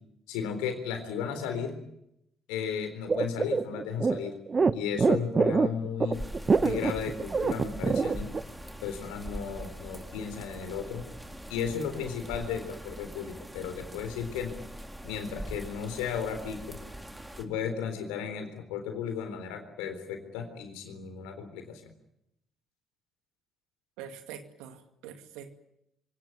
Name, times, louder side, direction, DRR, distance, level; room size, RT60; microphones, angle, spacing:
voice 1, 0.3-1.8 2.5-4.3 4.7-6.2 6.6-8.3 8.8-11.0 11.5-14.5 15.0-16.8 17.4-21.9, left 7 dB, 75° left, 7 dB, 3.9 m, -34 dB
sound 1, 3.1-8.4, right 4 dB, 35° right, 1.0 m, -25 dB
sound 2, 6.1-17.4, equal, 10° right, 3.5 m, -43 dB
voice 2, 24.0-25.5, right 8 dB, 75° right, 7 dB, 2.3 m, -44 dB
26.0 x 18.0 x 9.6 m, 0.81 s
hypercardioid pair, 50°, 0 cm